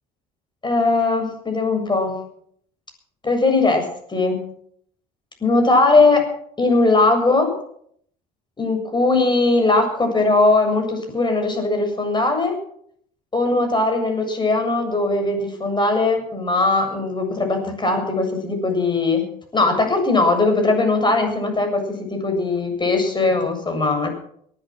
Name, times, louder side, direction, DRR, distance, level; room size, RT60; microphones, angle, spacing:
voice 1, 0.6-2.2 3.2-4.5 5.4-6.3 6.6-7.5 8.6-12.6 13.3-19.3 19.5-24.1, left 3 dB, 25° left, 4 dB, 7.6 m, -19 dB
19.5 x 11.0 x 6.3 m, 0.66 s
hypercardioid pair, 70°, 19 cm